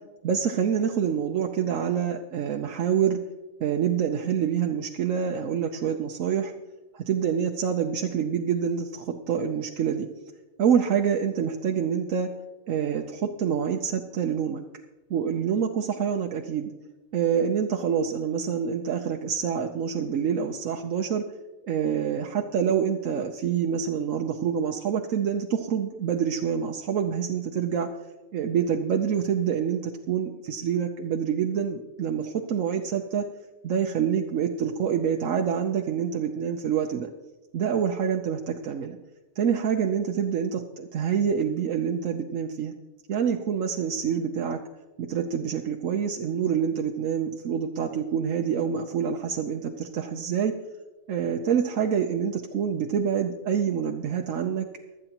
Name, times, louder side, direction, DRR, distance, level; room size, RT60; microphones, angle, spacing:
voice 1, 0.2-3.2 3.6-6.5 6.9-10.1 10.6-12.3 12.7-14.6 15.1-16.7 17.1-21.2 21.7-27.9 28.3-33.2 33.6-37.1 37.5-39.0 39.4-42.7 43.1-44.6 45.0-50.5 51.1-54.7, right 7 dB, 80° right, 3 dB, 1.1 m, -26 dB
24.5 x 8.9 x 2.9 m, 1.1 s
omnidirectional pair, 1.4 m